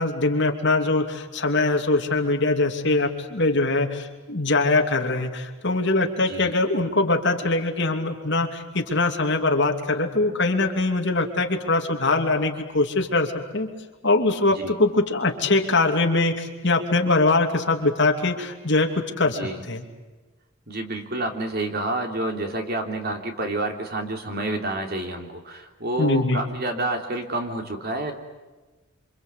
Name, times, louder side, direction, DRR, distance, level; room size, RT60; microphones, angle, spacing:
voice 1, 0.0-13.7 14.0-18.9 19.2-19.8 26.0-26.4, left 2 dB, 55° left, 3 dB, 2.9 m, -22 dB
voice 2, 19.3-19.6 20.7-28.1, right 2 dB, 50° right, 3 dB, 3.4 m, -29 dB
27.0 x 26.0 x 8.4 m, 1.2 s
head